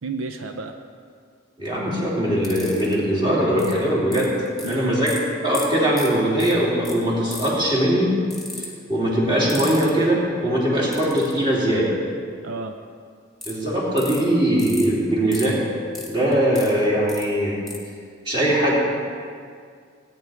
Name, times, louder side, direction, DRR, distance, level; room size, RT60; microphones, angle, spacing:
voice 1, 0.0-0.7 4.6-5.0 12.4-12.7, right 3 dB, 80° right, 6 dB, 0.6 m, -31 dB
voice 2, 1.6-4.3 4.7-5.1 5.4-8.2 8.6-11.9 13.4-15.6 16.1-17.6 18.2-18.7, right 1 dB, 25° right, -7 dB, 3.1 m, -21 dB
sound 1, 2.4-2.9 3.6-3.7 4.1-4.7 5.1-5.2 5.5-5.7 5.9-6.1 6.4-6.5 6.8-6.9 7.3-7.6 8.3-8.7 9.5-9.9 10.9-11.3 13.4-13.5 14.0-14.2 14.6-14.9 15.3-15.5 15.9-16.7 17.1-17.2 17.7-17.8, left 2 dB, ahead, 1.6 m, -34 dB
18.0 x 9.5 x 3.5 m, 2.1 s
head